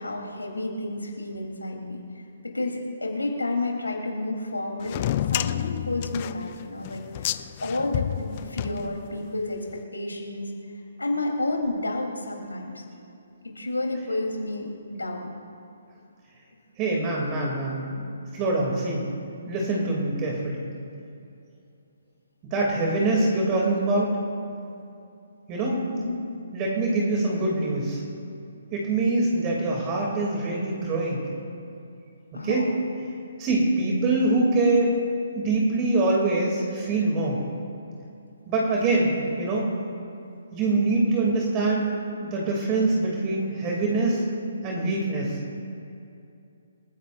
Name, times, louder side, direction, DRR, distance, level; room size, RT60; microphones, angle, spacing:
voice 1, 0.0-2.0 2.4-10.5 11.0-12.8 13.6-15.3 25.7-26.2 32.3-32.7, left 2 dB, 80° left, 0 dB, 3.6 m, -30 dB
sound 1, 4.8-9.4, left 12 dB, 35° left, 0.5 m, -30 dB
voice 2, 16.8-18.0 18.3-19.1 19.5-20.7 22.5-24.2 25.5-25.8 26.5-28.0 28.7-31.2 32.4-32.6 33.4-35.0 35.3-37.4 38.5-39.7 40.5-41.9 42.2-44.2 44.6-45.4, right 2 dB, 25° right, -2 dB, 2.9 m, -24 dB
28.5 x 15.0 x 2.6 m, 2.6 s
figure-of-eight pair, 135°, 0 cm